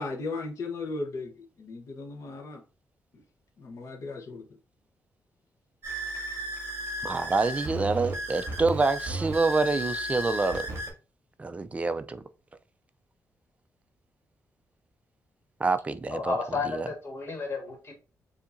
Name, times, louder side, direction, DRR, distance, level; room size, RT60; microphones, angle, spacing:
voice 1, 0.0-2.6 3.1-3.2 3.6-4.4, left 3 dB, 60° left, 1.1 m, -36 dB
sound 1, 5.8-10.9, right 1 dB, 40° right, 2.1 m, -34 dB
voice 2, 7.0-10.7 11.4-12.2 15.6-16.3 16.7-16.9, right 3 dB, 20° right, 0.4 m, -27 dB
voice 3, 16.1-17.9, left 4 dB, 45° left, 1.7 m, -32 dB
7.0 x 2.8 x 2.6 m
wide cardioid pair, 150°, 6 cm